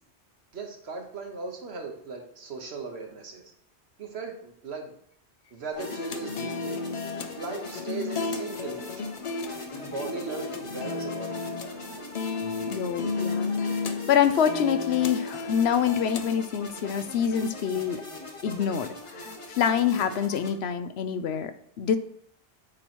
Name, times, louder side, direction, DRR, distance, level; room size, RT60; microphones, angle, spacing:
voice 1, 0.5-3.5 4.0-4.9 5.5-6.8 7.3-9.1 9.7-11.8, right 4 dB, 65° right, 3 dB, 1.3 m, -38 dB
sound 1, 5.7-20.5, left 1 dB, 30° left, 1.0 m, -42 dB
sound 2, 5.8-16.3, left 4 dB, 50° left, 0.5 m, -33 dB
voice 2, 12.4-18.1 18.4-22.0, left 8 dB, 70° left, 10 dB, 0.8 m, -26 dB
8.8 x 3.0 x 4.3 m, 0.64 s
omnidirectional pair, 1.2 m